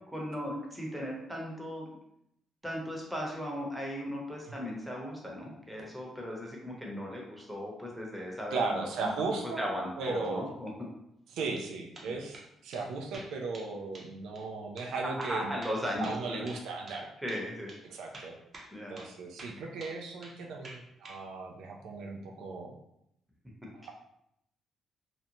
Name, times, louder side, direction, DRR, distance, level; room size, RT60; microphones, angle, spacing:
voice 1, 0.1-1.9 2.6-8.9 9.6-10.9 12.0-12.2 15.2-16.4 17.2-17.7 18.7-19.0, equal, 5° right, -2 dB, 0.8 m, -37 dB
voice 2, 8.5-9.7 10.0-10.4 11.3-12.4 12.6-15.5 16.0-17.1 17.9-18.4 18.9-22.7 23.7-23.9, right 3 dB, 85° right, 1 dB, 0.4 m, -36 dB
sound 1, 11.3-11.7 11.9-12.5 12.7-12.8 13.1-13.7 13.9-14.1 14.4-14.5 14.8-14.9 15.2-17.0 17.3-17.4 17.7-17.8 18.1-18.7 19.0-19.1 19.4-20.4 20.6-21.2, right 2 dB, 40° right, 0.6 m, -48 dB
2.6 x 2.1 x 2.8 m, 0.78 s
cardioid pair, 90°, 0 cm